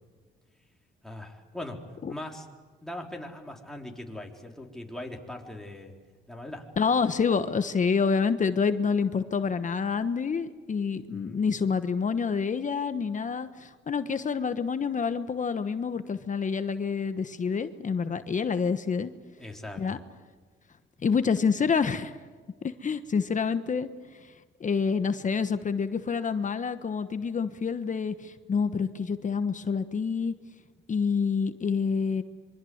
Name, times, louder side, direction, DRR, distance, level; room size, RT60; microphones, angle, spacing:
voice 1, 1.0-1.8 2.1-2.5 2.8-5.9 6.3-6.6 11.1-11.4 19.4-20.0, left 1 dB, ahead, 0 dB, 4.2 m, -40 dB
voice 2, 6.8-19.1 19.8-20.0 21.0-22.1 22.6-23.9 24.2-24.3 24.6-30.3 30.9-32.2, left 5 dB, 40° left, 10 dB, 1.2 m, -27 dB
26.0 x 24.0 x 8.1 m, 1.5 s
cardioid pair, 90°, 20 cm